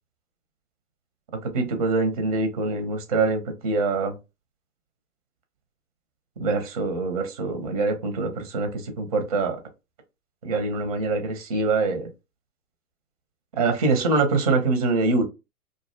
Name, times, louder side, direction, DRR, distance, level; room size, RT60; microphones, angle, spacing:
voice 1, 1.4-4.1 6.4-9.6 10.4-12.1 13.5-15.2, right 3 dB, 25° right, 0.4 m, -24 dB
2.4 x 2.1 x 2.5 m
figure-of-eight pair, 120°, 47 cm